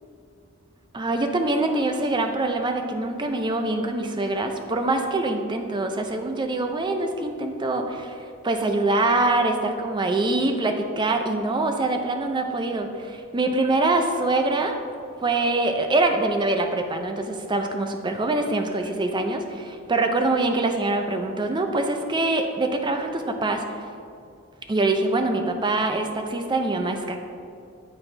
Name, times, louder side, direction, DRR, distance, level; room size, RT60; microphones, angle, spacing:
voice 1, 0.9-8.1 8.4-14.8 15.2-23.8 24.7-27.2, right 2 dB, 20° right, 5 dB, 0.5 m, -24 dB
9.0 x 4.2 x 3.3 m, 2.5 s
head